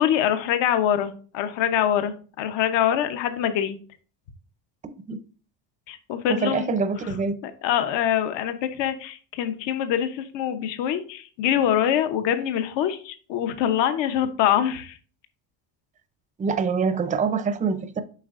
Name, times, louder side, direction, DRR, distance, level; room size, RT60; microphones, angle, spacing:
voice 1, 0.0-3.8 5.9-6.7 7.4-15.0, left 10 dB, 65° left, 0.9 m, -24 dB
voice 2, 6.3-7.3 16.4-18.0, right 5 dB, 15° right, 0.5 m, -25 dB
7.6 x 5.4 x 2.5 m
cardioid pair, 110°, 47 cm